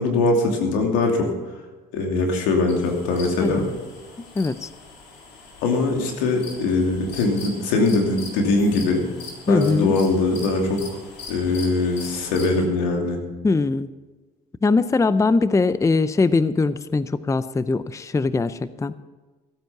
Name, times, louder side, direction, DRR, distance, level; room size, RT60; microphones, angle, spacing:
voice 1, 0.0-1.3 1.9-3.6 5.6-9.0 9.5-11.0 11.3-13.2, left 3 dB, 85° left, 2 dB, 2.7 m, -21 dB
sound 1, 2.7-12.7, left 4 dB, 70° left, 3.7 m, -41 dB
voice 2, 4.4-4.7 9.5-9.9 13.4-13.9 14.6-18.9, left 3 dB, 15° left, 15 dB, 0.5 m, -21 dB
15.5 x 9.1 x 5.9 m, 1.3 s
supercardioid pair, 75°, 19 cm